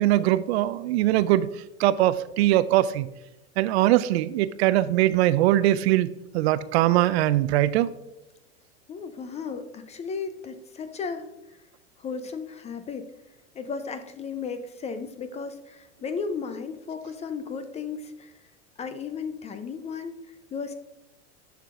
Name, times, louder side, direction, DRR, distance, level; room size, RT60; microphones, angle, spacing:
voice 1, 0.0-1.5 1.8-3.1 3.6-7.9, right 14 dB, 60° right, 16 dB, 0.5 m, -21 dB
voice 2, 8.9-11.3 12.0-13.1 13.6-18.3 18.8-20.1 20.5-20.7, left 5 dB, 20° left, 10 dB, 0.4 m, -34 dB
10.5 x 5.8 x 2.4 m, 0.94 s
hypercardioid pair, 100°, 37 cm